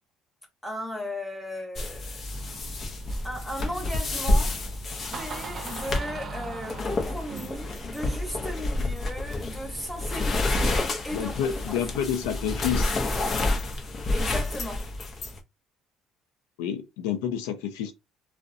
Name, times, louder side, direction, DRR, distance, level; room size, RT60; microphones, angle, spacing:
voice 1, 0.6-2.2 3.2-4.6 5.2-11.7 14.1-14.9, left 1 dB, 10° left, 1.1 m, -36 dB
sound 1, 1.8-15.4, left 2 dB, 45° left, 0.6 m, -29 dB
Door, 2.3-10.0, right 5 dB, 45° right, 0.6 m, -43 dB
voice 2, 11.1-12.9 16.6-17.9, left 9 dB, 90° left, 0.5 m, -29 dB
2.4 x 2.1 x 2.6 m
supercardioid pair, 75°, 0 cm